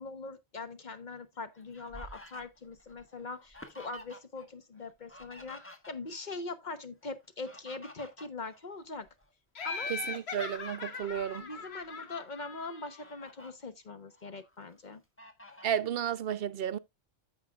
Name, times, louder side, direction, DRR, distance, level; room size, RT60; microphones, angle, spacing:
voice 1, 0.0-9.1 9.6-9.9 11.4-15.0, left 3 dB, 45° left, 1.1 m, -42 dB
Fowl, 1.1-4.5 4.7-6.3 7.2-9.3 9.8-10.0 10.6-11.7 12.3-12.4 12.7-13.5 14.0-14.7 15.2-15.9, equal, 10° left, 1.3 m, -52 dB
Laughter, 9.6-13.2, left 4 dB, 65° left, 1.4 m, -40 dB
voice 2, 9.9-11.4 15.6-16.8, right 9 dB, 60° right, 0.9 m, -32 dB
13.5 x 5.1 x 2.4 m
omnidirectional pair, 1.2 m